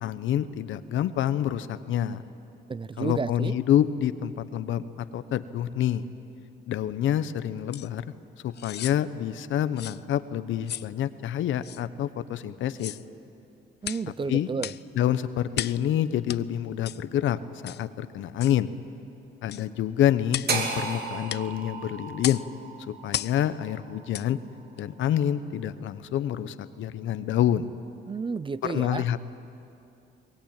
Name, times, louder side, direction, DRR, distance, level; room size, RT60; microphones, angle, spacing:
voice 1, 0.0-2.2 3.0-6.0 6.7-8.0 8.4-13.0 14.3-14.5 14.9-17.4 17.6-18.7 19.4-22.4 23.0-24.4 24.8-27.7 28.6-29.2, left 10 dB, 75° left, 13 dB, 1.0 m, -27 dB
voice 2, 2.7-3.5 13.8-14.7 28.1-29.1, right 5 dB, 25° right, 18 dB, 0.5 m, -31 dB
sound 1, 7.7-7.9 8.5-9.0 9.8-10.0 10.7-10.9 11.6-11.8 12.7-13.1 13.8-14.1 14.6-14.9 15.5-15.8 16.3-16.4 16.9-17.0 17.7-17.8 18.4-18.6 19.5-19.7 20.3-20.6 21.3-21.5 22.2-22.5 23.1-23.4 24.1-24.3 24.8-24.9, left 12 dB, 55° left, 0.5 m, -35 dB
sound 2, 20.5-24.6, right 4 dB, 55° right, 3.0 m, -34 dB
23.0 x 20.5 x 8.9 m, 2.7 s
cardioid pair, 90°, 20 cm